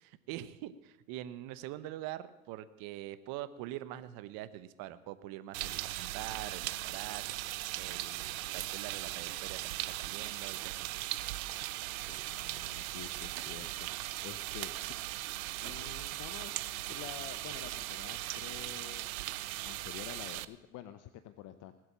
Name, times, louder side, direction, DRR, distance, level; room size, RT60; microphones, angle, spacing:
voice 1, 0.0-7.2 7.8-11.0, right 14 dB, 55° right, 14 dB, 1.1 m, -44 dB
sound 1, 5.5-20.4, right 16 dB, 75° right, 0.7 m, -39 dB
voice 2, 12.1-13.9 14.2-14.9 15.6-16.5 16.9-19.1 19.6-21.7, left 12 dB, 45° left, 11 dB, 0.9 m, -48 dB
19.0 x 8.0 x 7.3 m, 1.0 s
hypercardioid pair, 95°, 42 cm